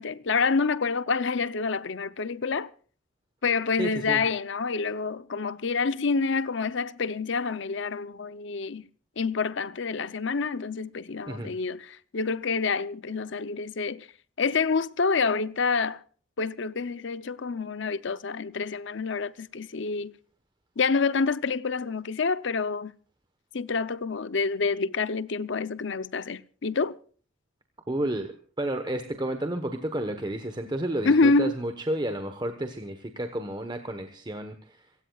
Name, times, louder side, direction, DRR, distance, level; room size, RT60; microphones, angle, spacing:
voice 1, 0.0-2.7 3.4-8.8 9.2-14.1 14.4-16.0 16.4-20.1 20.8-22.9 23.5-27.0 31.0-31.5, left 4 dB, 65° left, 0.7 m, -27 dB
voice 2, 3.8-4.2 11.3-11.5 27.9-34.8, right 1 dB, 20° right, 1.2 m, -31 dB
26.5 x 16.0 x 2.4 m
head